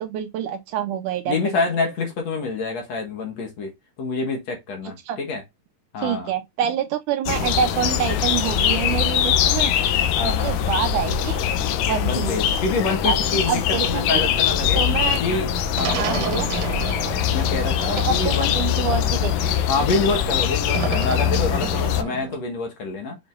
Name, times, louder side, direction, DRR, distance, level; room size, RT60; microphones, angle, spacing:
voice 1, 0.0-1.6 5.1-5.2 6.0-9.7 10.2-11.4 11.9-12.3 13.0-13.1 13.5-13.8 14.1-14.2 14.8-15.2 16.0-16.5 18.0-19.6, right 8 dB, 75° right, 2.1 m, -26 dB
voice 2, 1.3-5.4 5.9-6.3 10.2-10.6 12.0-14.9 15.2-16.5 17.3-18.5 19.5-23.2, left 3 dB, 55° left, 2.5 m, -27 dB
sound 1, 7.3-22.0, left 9 dB, 75° left, 2.2 m, -22 dB
sound 2, 15.7-19.8 20.7-22.4, right 7 dB, 55° right, 2.4 m, -32 dB
6.9 x 5.7 x 2.5 m
omnidirectional pair, 4.0 m